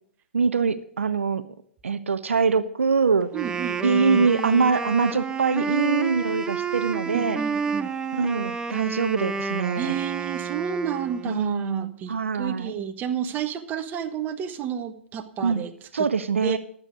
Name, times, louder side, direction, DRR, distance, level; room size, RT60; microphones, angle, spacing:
voice 1, 0.3-1.4 1.8-3.3 3.8-7.4 8.1-10.0 11.2-12.7 15.4-15.7 15.9-16.6, right 5 dB, 85° right, 14 dB, 0.5 m, -23 dB
Wind instrument woodwind instrument, 3.2-11.4, right 5 dB, 10° right, 0.7 m, -30 dB
voice 2, 3.3-4.2 5.6-5.7 7.1-7.9 9.8-15.7 16.0-16.1 16.4-16.6, right 8 dB, 30° right, 7 dB, 1.1 m, -31 dB
11.5 x 8.2 x 5.0 m, 0.62 s
hypercardioid pair, 115°, 7 cm